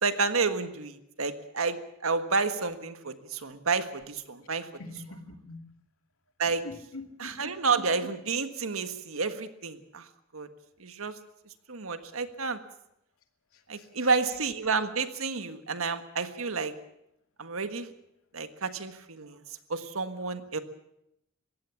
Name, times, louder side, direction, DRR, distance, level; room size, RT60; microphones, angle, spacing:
voice 1, 0.0-4.7 6.4-6.6 7.2-10.1 10.3-10.5 10.8-11.1 11.7-12.6 13.7-16.7 17.4-17.9 18.3-19.4 19.7-20.6, right 4 dB, 85° right, 10 dB, 1.6 m, -30 dB
voice 2, 4.8-5.6 6.6-7.3 12.0-12.2 13.5-13.9, left 2 dB, 85° left, 6 dB, 2.3 m, -44 dB
22.0 x 16.5 x 7.2 m, 0.80 s
head